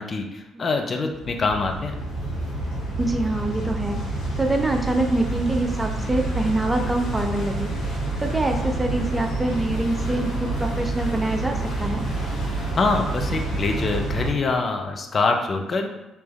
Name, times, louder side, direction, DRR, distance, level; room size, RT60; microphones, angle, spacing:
voice 1, 0.0-1.9 12.7-15.9, left 3 dB, 40° left, 3 dB, 0.5 m, -24 dB
sound 1, 1.1-14.3, right 2 dB, 75° left, 1.4 m, -28 dB
voice 2, 3.0-4.0 4.4-12.0, right 2 dB, 15° right, 4 dB, 0.5 m, -25 dB
3.3 x 3.0 x 3.3 m, 1.0 s
figure-of-eight pair, 45°, 0 cm